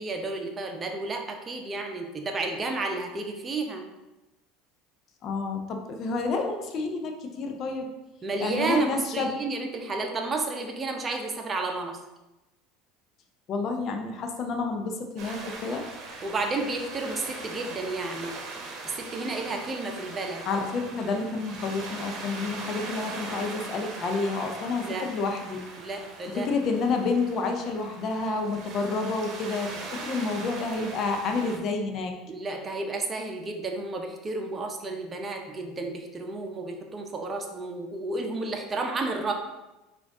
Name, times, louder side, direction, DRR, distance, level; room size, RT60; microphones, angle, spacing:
voice 1, 0.0-3.8 8.2-12.0 16.2-18.3 18.8-20.4 24.8-25.1 25.8-26.5 32.3-39.3, right 3 dB, 30° right, 4 dB, 0.7 m, -31 dB
voice 2, 5.2-7.9 8.4-9.3 13.5-15.8 20.4-25.9 26.3-29.7 30.0-32.1, left 3 dB, 50° left, 4 dB, 0.6 m, -29 dB
sound 1, 15.2-31.6, right 3 dB, 55° right, 0.8 m, -40 dB
5.0 x 2.5 x 3.6 m, 1.0 s
hypercardioid pair, 85°, 0 cm